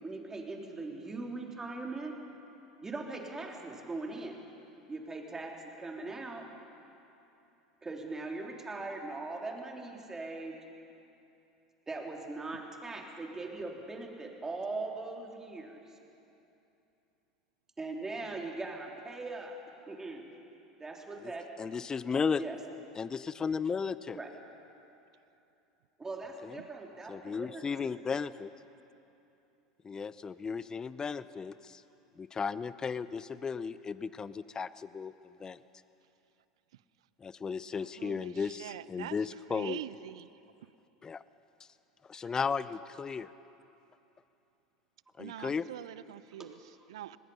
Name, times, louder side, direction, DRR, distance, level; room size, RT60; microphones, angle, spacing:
voice 1, 0.0-2.1 2.8-4.4 4.9-6.5 7.8-10.6 11.9-15.8 17.8-19.6 19.8-20.3 20.8-21.5 22.4-22.6 24.1-24.3 26.0-27.9 46.4-46.5, right 3 dB, 15° right, 1 dB, 3.5 m, -40 dB
voice 2, 21.6-22.4 23.0-24.2 26.4-26.6 27.1-28.5 29.8-31.8 32.2-35.1 35.4-35.6 37.2-39.8 41.0-41.2 42.1-43.3 45.2-45.6, left 5 dB, 25° left, 16 dB, 0.7 m, -35 dB
voice 3, 37.8-39.2 39.5-40.3 45.2-47.2, right 12 dB, 75° right, 17 dB, 0.6 m, -44 dB
25.5 x 20.0 x 5.6 m, 2.8 s
hypercardioid pair, 85°, 3 cm